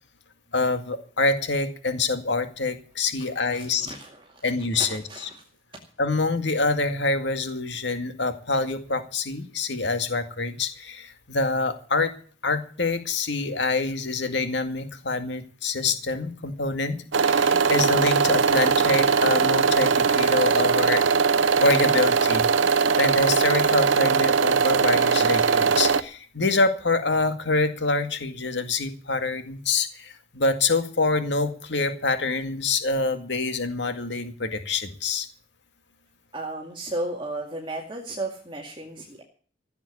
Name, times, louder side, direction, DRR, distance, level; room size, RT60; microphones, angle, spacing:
voice 1, 0.5-3.9 4.4-5.3 6.0-12.1 12.4-21.1 21.6-22.5 23.0-35.3, left 3 dB, 70° left, 8 dB, 2.1 m, -26 dB
voice 2, 3.4-5.4 36.3-39.2, right 2 dB, 25° right, -1 dB, 2.3 m, -35 dB
sound 1, 17.1-26.0, right 5 dB, 85° right, 0.8 m, -20 dB
16.0 x 8.1 x 8.3 m, 0.42 s
head